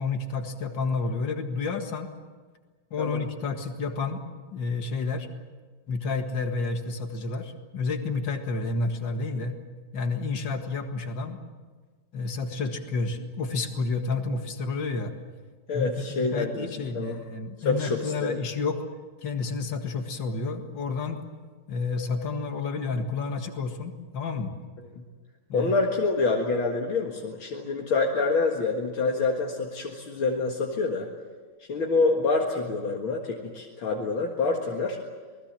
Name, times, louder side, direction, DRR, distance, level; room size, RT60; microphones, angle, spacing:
voice 1, 0.0-2.1 2.9-4.2 4.5-5.3 5.9-9.6 9.9-11.4 12.1-15.1 15.7-18.8 19.2-21.2 21.7-24.5 25.5-25.7, left 4 dB, 65° left, 6 dB, 2.5 m, -30 dB
voice 2, 15.7-16.7 16.9-17.2 17.7-18.4 25.0-25.1 25.5-31.1 31.7-35.0, left 3 dB, 80° left, 0 dB, 2.6 m, -26 dB
27.5 x 20.0 x 7.5 m, 1.4 s
omnidirectional pair, 2.2 m